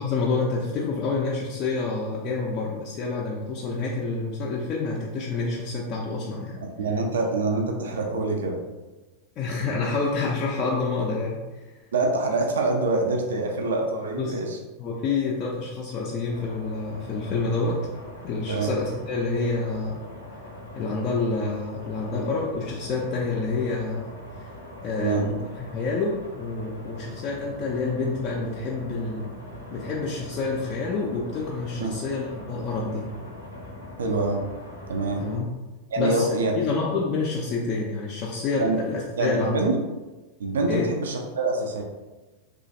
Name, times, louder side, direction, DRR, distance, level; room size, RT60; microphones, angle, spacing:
voice 1, 0.0-6.6 9.4-11.8 14.2-14.4 14.8-17.8 18.2-20.0 20.7-24.1 24.4-24.5 24.8-25.4 25.7-29.3 29.7-33.1 35.2-35.5 36.0-39.6 40.7-40.9, left 3 dB, 35° left, -4 dB, 0.4 m, -28 dB
voice 2, 6.6-8.6 11.9-14.6 18.5-18.7 25.0-25.3 31.8-31.9 34.0-34.4 34.9-35.2 35.9-36.5 38.6-38.8 39.2-39.8 40.4-41.8, right 3 dB, 65° right, 1 dB, 0.4 m, -25 dB
sound 1, 16.3-35.3, left 1 dB, 90° right, 0.8 m, -42 dB
3.0 x 2.4 x 2.6 m, 1.2 s
figure-of-eight pair, 90°, 0 cm